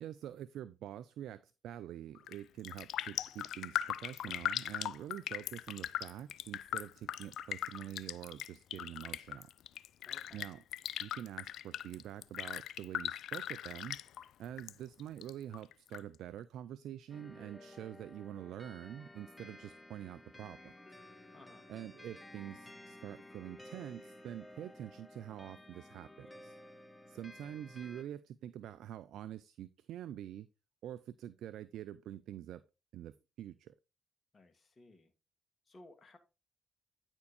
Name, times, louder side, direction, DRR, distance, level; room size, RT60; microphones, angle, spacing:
voice 1, 0.0-9.5 10.3-10.6 11.0-14.0 14.4-20.7 21.7-26.6 27.1-30.5 30.8-32.6 32.9-33.7, right 11 dB, 70° right, 16 dB, 0.3 m, -46 dB
Raindrop, 2.2-2.4 2.6-14.7 15.0-16.0 16.4-16.5, left 11 dB, 70° left, 0.3 m, -40 dB
voice 2, 10.0-10.4 21.3-21.7 34.3-35.1 35.7-36.2, left 2 dB, 40° left, 8 dB, 1.8 m, -58 dB
sound 1, 17.1-28.0, left 1 dB, 10° left, 1.5 m, -54 dB
9.5 x 4.4 x 4.1 m, 0.29 s
hypercardioid pair, 45°, 0 cm